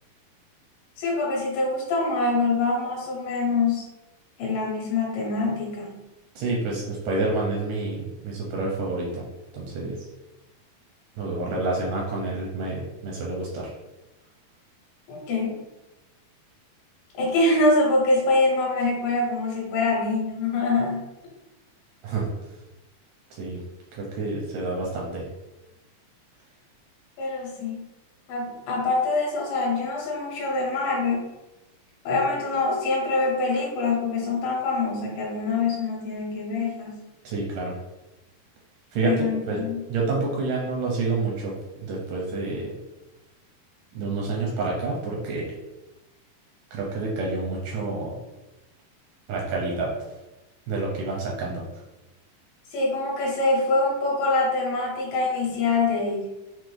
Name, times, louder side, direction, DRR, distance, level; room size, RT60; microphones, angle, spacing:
voice 1, 1.0-3.9 4.4-6.0 15.1-15.6 17.2-21.1 27.2-27.8 28.3-31.3 32.0-37.0 39.0-39.8 52.7-56.3, left 3 dB, 75° left, -2 dB, 2.6 m, -24 dB
voice 2, 6.4-9.3 9.5-10.0 11.2-13.7 22.0-22.3 23.4-23.6 24.0-25.2 37.2-37.7 38.9-41.6 41.8-42.7 43.9-45.6 46.7-48.2 49.3-49.9 50.7-51.6, right 3 dB, 85° right, -3 dB, 1.9 m, -28 dB
5.8 x 2.0 x 3.1 m, 1.0 s
omnidirectional pair, 4.2 m